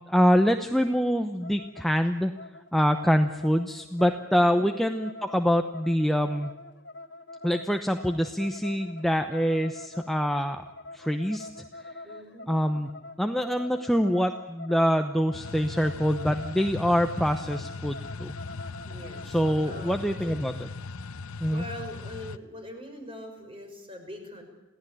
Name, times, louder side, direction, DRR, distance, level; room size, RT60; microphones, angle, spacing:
voice 1, 0.1-2.3 2.7-6.5 7.4-10.6 10.9-11.5 12.5-12.9 13.2-18.3 19.3-20.7 21.4-21.6, equal, ahead, 5 dB, 0.8 m, -25 dB
sound 1, 1.4-20.0, left 2 dB, 55° left, 1.8 m, -45 dB
voice 2, 12.0-12.5 18.9-20.4 21.5-24.4, left 1 dB, 25° right, 4 dB, 5.8 m, -42 dB
sound 2, 15.3-22.4, left 4 dB, 85° left, 0.8 m, -39 dB
28.0 x 17.0 x 10.0 m, 1.1 s
head